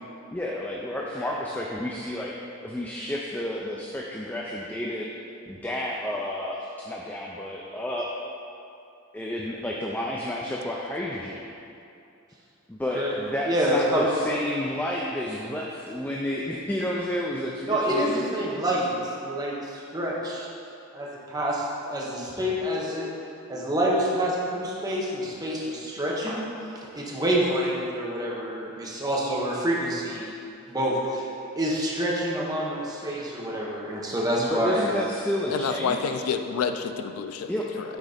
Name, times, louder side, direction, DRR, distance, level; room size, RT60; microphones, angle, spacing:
voice 1, 0.3-2.3 2.6-5.1 5.5-6.6 6.9-8.1 9.1-11.5 12.7-18.5 34.4-36.2 37.5-37.7, left 1 dB, 10° left, -3 dB, 0.3 m, -31 dB
voice 2, 13.5-14.1 17.7-20.5 20.9-23.1 23.5-26.5 26.9-30.3 30.7-31.3 31.6-35.0, right 1 dB, 20° right, -4 dB, 0.9 m, -27 dB
voice 3, 35.5-37.5 37.8-37.9, left 6 dB, 90° left, 7 dB, 0.4 m, -28 dB
6.1 x 4.1 x 5.0 m, 2.6 s
head